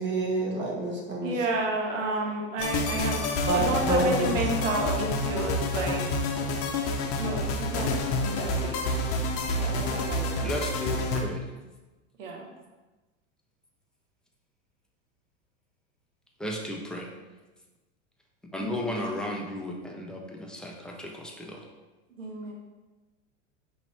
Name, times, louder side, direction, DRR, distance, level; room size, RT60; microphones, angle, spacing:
voice 1, 0.0-1.3 2.0-2.2 3.5-4.3, right 2 dB, 30° right, -2 dB, 1.1 m, -27 dB
voice 2, 1.2-6.1 7.1-8.8 9.6-10.5 12.2-12.5 18.6-19.1 22.2-22.5, right 2 dB, 90° right, 0 dB, 1.0 m, -31 dB
sound 1, 2.6-11.2, left 2 dB, 40° left, 0.7 m, -28 dB
voice 3, 10.4-11.4 16.4-17.1 18.5-21.6, left 1 dB, ahead, -1 dB, 0.3 m, -34 dB
5.3 x 3.0 x 3.1 m, 1.2 s
hypercardioid pair, 115°, 37 cm